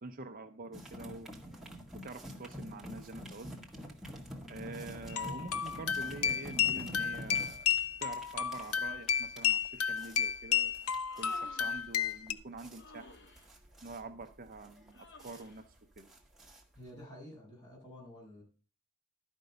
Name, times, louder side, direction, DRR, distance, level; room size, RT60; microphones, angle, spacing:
voice 1, 0.0-1.3 2.0-3.6 4.5-7.7 8.0-10.7 11.2-13.2 13.8-15.7 16.0-16.1, right 3 dB, 40° right, 6 dB, 0.7 m, -46 dB
sound 1, 0.7-17.0, equal, ahead, 1.4 m, -48 dB
sound 2, 5.1-12.3, left 8 dB, 75° left, 0.6 m, -32 dB
Human voice, 10.9-11.9 12.7-13.5 14.9-15.6, left 2 dB, 50° left, 1.0 m, -54 dB
voice 2, 16.8-18.4, left 1 dB, 20° left, -2 dB, 6.9 m, -50 dB
12.0 x 5.3 x 6.6 m, 0.36 s
head